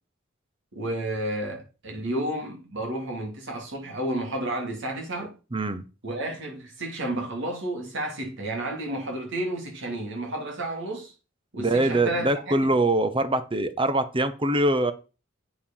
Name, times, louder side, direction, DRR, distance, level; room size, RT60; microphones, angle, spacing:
voice 1, 0.7-5.3 6.0-11.1 11.5-12.3 12.6-12.8, right 1 dB, 65° right, 2.9 m, -31 dB
voice 2, 5.5-5.8 11.6-14.9, right 2 dB, 25° right, 0.8 m, -23 dB
8.6 x 5.0 x 5.5 m
head